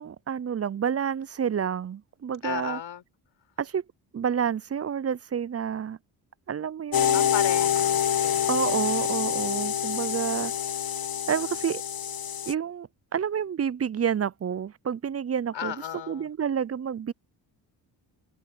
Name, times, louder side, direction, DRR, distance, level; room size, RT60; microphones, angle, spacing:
voice 1, 0.0-2.8 3.6-3.8 4.1-6.0 6.5-7.3 8.5-10.5 11.3-11.8 12.5-17.1, right 8 dB, 30° right, 0.6 m, -29 dB
voice 2, 2.4-3.0 7.1-8.6 15.5-16.3, left 9 dB, 65° left, 5.7 m, -35 dB
sound 1, 6.9-12.5, left 9 dB, 45° left, 1.3 m, -26 dB
supercardioid pair, 55°, 48 cm